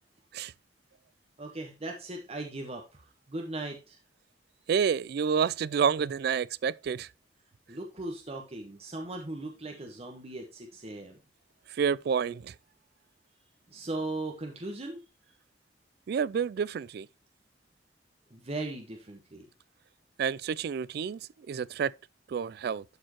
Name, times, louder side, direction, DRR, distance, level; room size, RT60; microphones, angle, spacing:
voice 1, 1.4-4.0 7.7-11.2 13.7-15.0 18.3-19.4, right 2 dB, 35° right, 1.1 m, -38 dB
voice 2, 4.7-7.1 11.7-12.5 16.1-17.1 20.2-21.9 22.3-22.8, right 7 dB, 60° right, 0.3 m, -29 dB
12.0 x 4.4 x 2.9 m
head